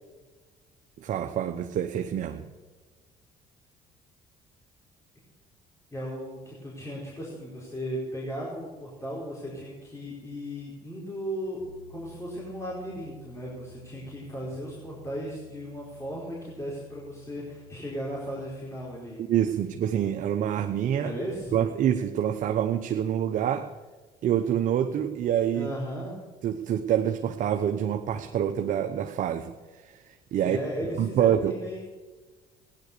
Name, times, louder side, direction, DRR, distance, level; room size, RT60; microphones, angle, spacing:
voice 1, 1.0-2.5 19.3-21.1 21.5-23.7 24.2-25.7 26.4-30.6 31.0-31.5, right 10 dB, 60° right, 6 dB, 0.9 m, -26 dB
voice 2, 5.9-11.6 11.9-19.2 21.0-21.6 25.5-26.2 30.4-31.9, equal, 20° left, -5 dB, 4.6 m, -36 dB
sound 1, 11.6-18.9, left 2 dB, 10° right, 4.1 m, -52 dB
16.0 x 10.5 x 6.8 m, 1.3 s
cardioid pair, 90°, 15 cm